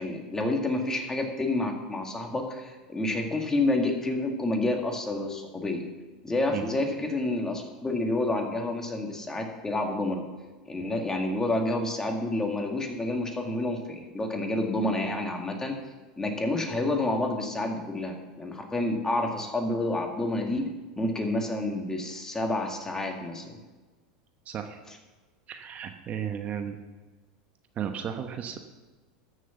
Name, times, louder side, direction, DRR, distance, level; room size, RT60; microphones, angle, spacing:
voice 1, 0.0-5.8 6.2-10.2 10.7-15.7 16.2-20.7 21.0-23.6, left 2 dB, 15° left, 2 dB, 2.0 m, -29 dB
voice 2, 24.5-24.8 25.5-26.8 27.7-28.6, right 8 dB, 35° right, 6 dB, 1.0 m, -34 dB
13.5 x 6.4 x 7.0 m, 1.3 s
hypercardioid pair, 105°, 4 cm